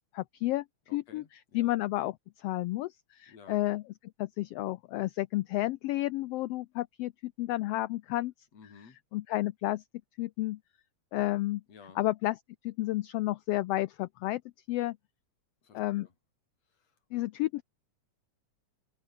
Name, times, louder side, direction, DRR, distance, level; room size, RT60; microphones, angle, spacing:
voice 1, 0.1-0.6 0.9-1.2 1.5-3.8 4.2-8.3 9.1-9.8 10.2-10.6 11.1-11.6 12.0-12.3 12.6-14.4 14.7-15.0 15.7-16.1 17.1-17.6, left 17 dB, 90° left, 1.3 m, -31 dB
voice 2, 0.9-1.7 3.3-3.6 8.5-9.0 11.7-12.0 15.6-16.1 16.7-17.0, left 5 dB, 60° left, 5.1 m, -54 dB
omnidirectional pair, 3.3 m